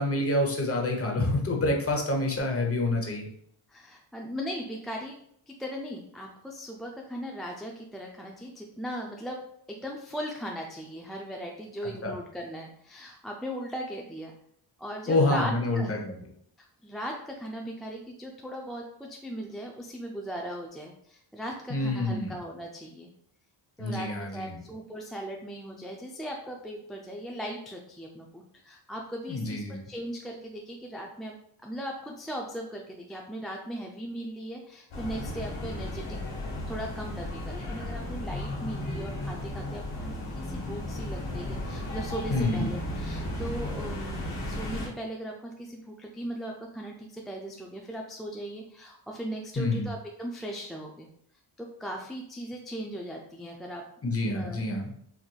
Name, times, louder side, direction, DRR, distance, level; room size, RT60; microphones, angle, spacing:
voice 1, 0.0-3.3 12.0-12.1 15.1-16.2 21.7-22.4 23.8-24.6 29.3-29.8 42.3-42.7 49.6-49.9 54.0-54.9, left 2 dB, 30° left, 1 dB, 0.9 m, -27 dB
voice 2, 3.7-5.1 5.5-9.4 9.7-14.3 14.8-16.0 16.8-23.1 23.8-36.2 36.7-51.1 51.6-53.8 54.2-54.7, equal, ahead, 0 dB, 0.3 m, -38 dB
sound 1, 34.9-44.9, left 1 dB, 75° left, 1.2 m, -35 dB
4.6 x 2.5 x 2.3 m, 0.68 s
cardioid pair, 65°, 49 cm